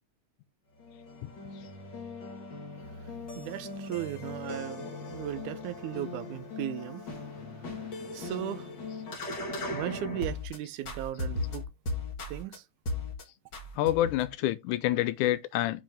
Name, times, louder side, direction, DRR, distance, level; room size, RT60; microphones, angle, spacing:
sound 1, 0.8-10.6 10.8-12.6 12.9-13.2 13.5-14.3, left 2 dB, 40° left, 2.1 m, -38 dB
voice 1, 3.0-7.1 7.7-7.8 8.1-8.7 9.7-11.6 12.3-12.6, right 13 dB, 80° right, 2.0 m, -37 dB
voice 2, 13.8-15.8, left 14 dB, 85° left, 2.0 m, -27 dB
7.6 x 4.9 x 3.4 m
omnidirectional pair, 3.6 m